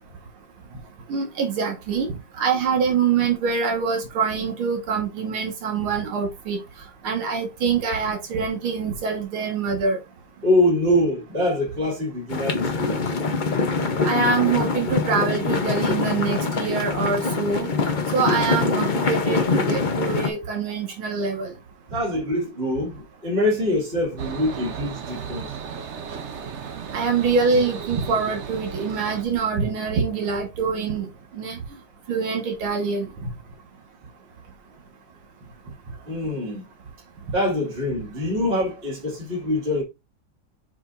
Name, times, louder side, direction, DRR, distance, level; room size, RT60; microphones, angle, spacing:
voice 1, 1.1-6.6 7.0-10.0 14.0-17.7 18.1-21.5 26.9-31.1 31.3-31.6 32.1-33.1, right 5 dB, 85° right, 2.4 m, -24 dB
voice 2, 10.4-13.0 21.9-25.6 36.0-36.6 37.3-39.8, left 1 dB, 30° right, 2.5 m, -24 dB
sound 1, 12.3-20.3, left 4 dB, 60° left, 0.5 m, -24 dB
sound 2, 24.2-29.2, right 6 dB, 60° right, 0.7 m, -35 dB
7.5 x 5.2 x 2.6 m
omnidirectional pair, 2.2 m